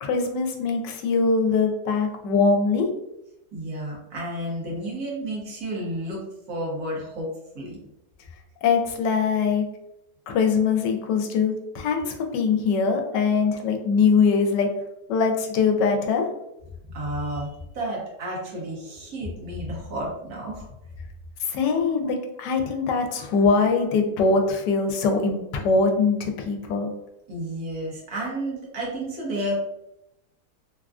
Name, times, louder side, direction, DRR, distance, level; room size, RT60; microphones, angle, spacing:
voice 1, 0.0-2.9 8.6-9.6 10.3-14.7 15.1-16.3 21.5-26.9, left 4 dB, 85° left, 4 dB, 1.2 m, -22 dB
voice 2, 3.5-7.3 7.5-7.8 13.4-13.6 16.9-20.7 23.1-23.3 27.3-29.5, right 1 dB, 65° right, -4 dB, 1.4 m, -31 dB
3.6 x 2.3 x 2.3 m, 0.86 s
omnidirectional pair, 1.8 m